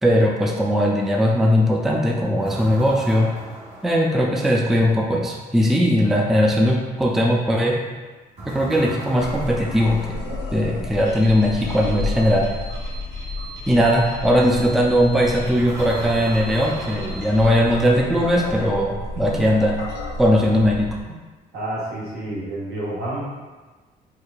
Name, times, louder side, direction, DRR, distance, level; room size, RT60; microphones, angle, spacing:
voice 1, 0.0-3.3 3.8-7.8 8.4-10.2 10.5-12.5 13.7-19.8 20.2-21.0, equal, ahead, -1 dB, 0.3 m, -19 dB
sound 1, 2.4-4.7 8.4-10.9 15.6-18.2, right 1 dB, 40° right, 1.1 m, -38 dB
sound 2, 9.2-21.0, left 2 dB, 75° left, 0.6 m, -32 dB
sound 3, 11.0-17.4, right 2 dB, 20° right, 0.8 m, -40 dB
voice 2, 21.5-23.2, right 1 dB, 80° right, -7 dB, 1.3 m, -29 dB
4.5 x 2.5 x 2.3 m, 1.3 s
cardioid pair, 130°, 17 cm